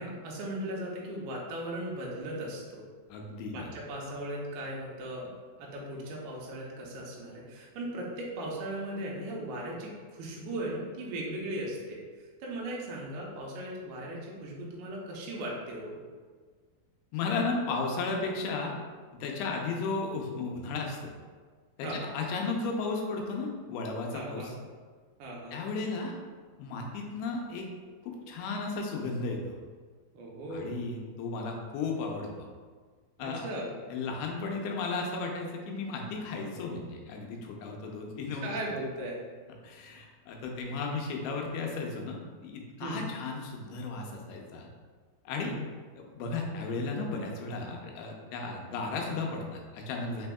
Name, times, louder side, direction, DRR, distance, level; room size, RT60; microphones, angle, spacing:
voice 1, 0.0-2.8 3.5-5.3 5.6-12.0 12.4-16.0 21.8-22.0 24.1-24.5 25.2-25.6 30.1-30.7 33.2-33.7 38.3-39.2 42.8-43.0 45.4-45.6, right 1 dB, 85° right, -3 dB, 2.6 m, -37 dB
voice 2, 3.1-3.7 17.1-18.7 19.1-21.1 21.8-24.5 25.5-26.2 26.6-27.7 28.0-29.5 30.5-32.5 33.2-33.5 33.9-38.6 39.6-42.2 42.4-44.7 45.3-45.5 46.0-50.3, left 3 dB, 85° left, 1 dB, 2.5 m, -34 dB
5.9 x 3.4 x 2.3 m, 1.5 s
omnidirectional pair, 4.4 m